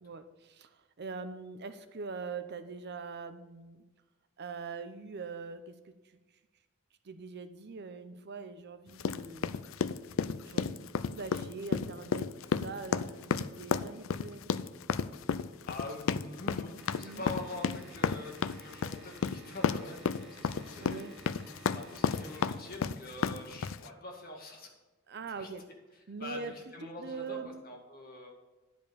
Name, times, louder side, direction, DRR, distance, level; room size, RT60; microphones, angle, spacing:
voice 1, 0.0-3.8 4.4-6.2 7.0-9.5 10.4-14.5 17.0-17.2 20.8-21.1 25.1-25.6 26.1-26.5 27.0-27.6, right 4 dB, 55° right, 11 dB, 0.7 m, -43 dB
sound 1, 9.0-23.9, left 6 dB, 70° left, 0.4 m, -32 dB
voice 2, 15.7-21.0 21.6-24.7 25.4-25.5 26.2-26.4 26.7-27.4 27.6-28.3, left 2 dB, 45° left, 1 dB, 2.0 m, -44 dB
sound 2, 16.8-23.0, right 3 dB, 5° right, 1.7 m, -54 dB
10.5 x 5.2 x 6.9 m, 1.2 s
head